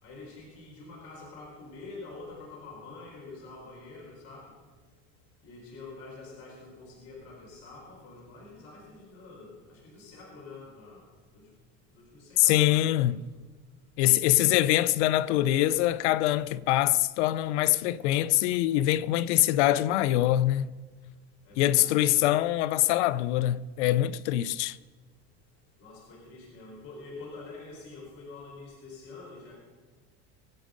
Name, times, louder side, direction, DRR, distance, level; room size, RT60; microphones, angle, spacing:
voice 1, 0.0-4.5 5.4-11.0 11.3-11.4 11.9-13.1 15.6-15.8 21.4-22.3 25.8-29.5, left 3 dB, 45° left, 4.7 m, -46 dB
voice 2, 12.4-13.2 14.0-20.7 21.6-24.8, left 14 dB, 80° left, 0.6 m, -24 dB
23.0 x 8.2 x 5.2 m
supercardioid pair, 130°, 34 cm